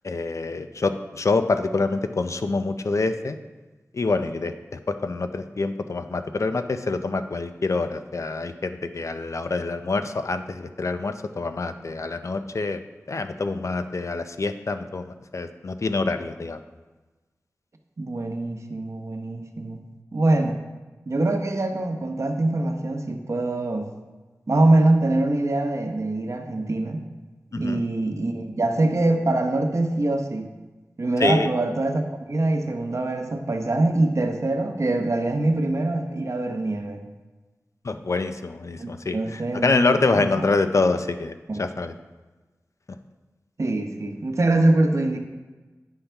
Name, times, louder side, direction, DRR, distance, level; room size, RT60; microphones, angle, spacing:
voice 1, 0.0-3.4 3.9-12.8 13.1-16.6 27.5-27.8 31.2-31.5 37.8-41.9, left 3 dB, 55° left, 9 dB, 0.5 m, -26 dB
voice 2, 18.0-19.8 20.1-20.6 21.1-23.9 24.5-27.1 27.5-30.5 31.0-32.0 32.3-37.0 38.8-40.3 41.5-41.6 43.6-45.2, right 2 dB, 55° right, 4 dB, 0.9 m, -23 dB
10.0 x 5.6 x 3.4 m, 1.2 s
wide cardioid pair, 70°, 6 cm